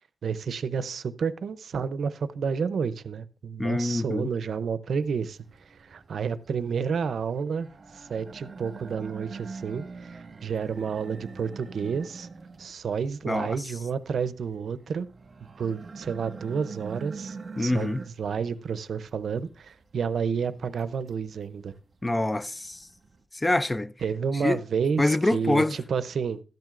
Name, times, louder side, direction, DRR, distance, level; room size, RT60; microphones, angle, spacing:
voice 1, 0.2-5.4 5.8-7.7 7.9-12.3 12.6-15.1 15.6-21.7 24.0-26.4, right 6 dB, 80° right, 0.6 m, -30 dB
voice 2, 3.6-4.3 13.3-13.6 17.6-18.0 22.0-22.9 23.3-23.9 24.4-24.6 25.0-25.8, left 2 dB, 15° left, 0.4 m, -25 dB
sound 1, 5.0-23.2, right 4 dB, 50° right, 1.7 m, -45 dB
13.0 x 10.5 x 2.5 m
wide cardioid pair, 135°, 0 cm